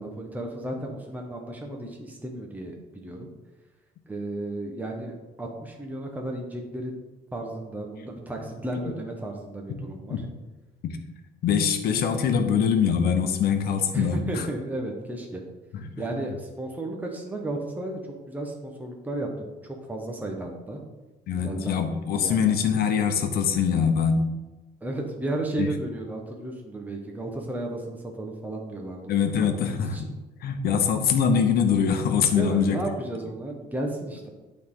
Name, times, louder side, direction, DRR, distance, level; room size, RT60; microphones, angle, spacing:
voice 1, 0.0-3.3 4.1-6.9 7.3-10.2 13.9-15.4 16.0-18.0 18.3-20.8 21.3-21.8 22.2-22.6 24.8-29.1 29.4-30.1 32.3-34.3, right 1 dB, 10° right, 0 dB, 1.2 m, -33 dB
voice 2, 11.4-14.5 15.7-15.9 21.3-24.3 25.6-25.7 29.1-30.1 30.4-32.8, left 7 dB, 65° left, 6 dB, 1.1 m, -23 dB
11.5 x 4.2 x 3.8 m, 1.1 s
cardioid pair, 110°, 17 cm